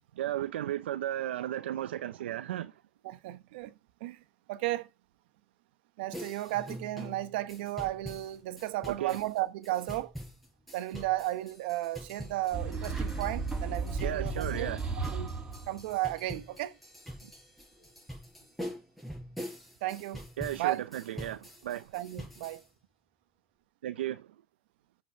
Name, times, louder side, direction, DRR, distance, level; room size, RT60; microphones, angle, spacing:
voice 1, 0.2-2.8 9.0-9.2 14.0-14.8 17.2-17.3 20.4-21.9 23.8-24.3, right 12 dB, 85° right, 0.5 m, -35 dB
voice 2, 3.0-3.7 4.0-4.2 4.5-4.9 6.0-10.1 10.7-14.7 15.1-15.3 15.7-16.8 19.8-20.2 20.6-20.8 21.9-22.6, right 16 dB, 70° right, 1.0 m, -34 dB
sound 1, 6.1-22.7, equal, ahead, 4.7 m, -45 dB
sound 2, 12.5-16.0, right 4 dB, 15° right, 5.3 m, -34 dB
7.9 x 5.9 x 5.5 m
hypercardioid pair, 105°, 6 cm